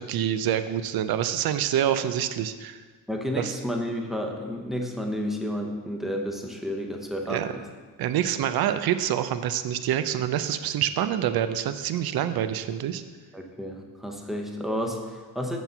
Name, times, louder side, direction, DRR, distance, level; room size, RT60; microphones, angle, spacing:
voice 1, 0.0-2.8 3.4-3.5 7.3-7.5 8.0-13.0, right 10 dB, 75° right, 11 dB, 0.6 m, -26 dB
voice 2, 3.1-7.7 13.3-15.6, equal, ahead, 1 dB, 0.8 m, -31 dB
8.0 x 4.5 x 6.7 m, 1.5 s
cardioid pair, 150°, 36 cm